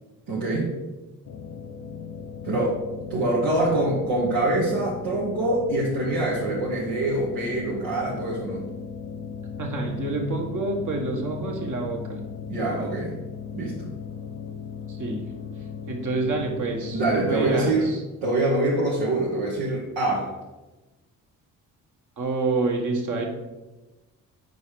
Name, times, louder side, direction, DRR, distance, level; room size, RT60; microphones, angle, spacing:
voice 1, 0.3-0.7 2.4-2.8 3.1-8.6 12.5-13.1 13.5-13.9 16.9-17.9 18.2-20.3, right 2 dB, 75° right, -6 dB, 1.3 m, -24 dB
sound 1, 1.2-17.9, left 6 dB, 55° left, 0.7 m, -37 dB
voice 2, 9.6-12.3 14.9-15.2 15.9-18.0 22.2-23.2, right 3 dB, 50° right, 1 dB, 1.4 m, -28 dB
4.8 x 4.0 x 5.0 m, 1.1 s
supercardioid pair, 50°, 39 cm